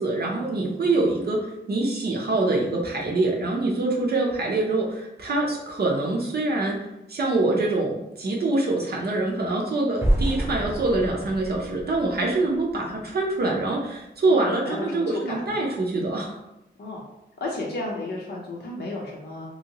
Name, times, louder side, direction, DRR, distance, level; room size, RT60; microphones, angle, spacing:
voice 1, 0.0-6.8 7.1-16.4, right 2 dB, 60° right, -2 dB, 0.5 m, -25 dB
sound 1, 10.0-13.0, right 1 dB, 15° right, 0.5 m, -28 dB
voice 2, 14.2-15.7 16.8-17.0 17.4-19.5, left 2 dB, 65° left, -3 dB, 0.6 m, -33 dB
2.8 x 2.7 x 2.8 m, 0.89 s
wide cardioid pair, 150°, 19 cm